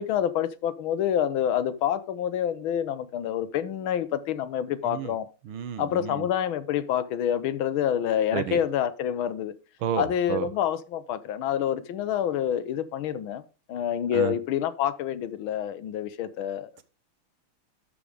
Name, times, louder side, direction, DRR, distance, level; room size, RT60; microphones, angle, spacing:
voice 1, 0.0-5.3 5.8-9.5 10.0-13.4 13.7-16.7, left 10 dB, 75° left, 1.6 m, -27 dB
voice 2, 5.4-6.2 8.3-8.6 9.8-10.5 14.1-14.3, right 9 dB, 75° right, 1.8 m, -31 dB
12.0 x 5.1 x 5.0 m
omnidirectional pair, 2.4 m